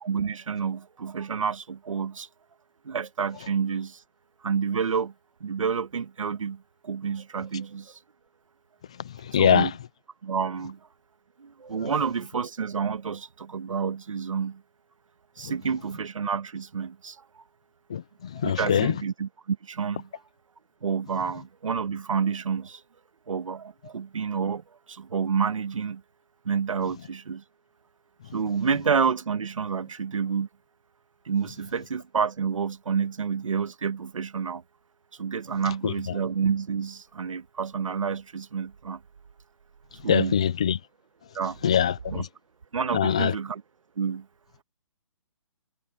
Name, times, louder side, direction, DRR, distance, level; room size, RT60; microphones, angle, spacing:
voice 1, 0.0-2.3 2.8-4.0 4.4-5.1 5.4-8.0 9.4-9.8 10.2-10.8 11.4-14.6 15.4-17.2 18.3-20.1 20.8-22.8 23.3-26.0 26.4-27.4 28.3-30.5 31.2-34.6 35.2-39.0 40.0-40.4 41.3-41.6 42.1-42.3 42.7-43.6 44.0-44.2, right 6 dB, 75° right, 1.6 m, -29 dB
voice 2, 9.3-9.7 17.9-18.0 18.4-18.9 35.8-35.9 40.1-40.8 41.6-42.2 42.9-43.3, left 9 dB, 10° left, 0.3 m, -22 dB
hypercardioid pair, 170°, 17 cm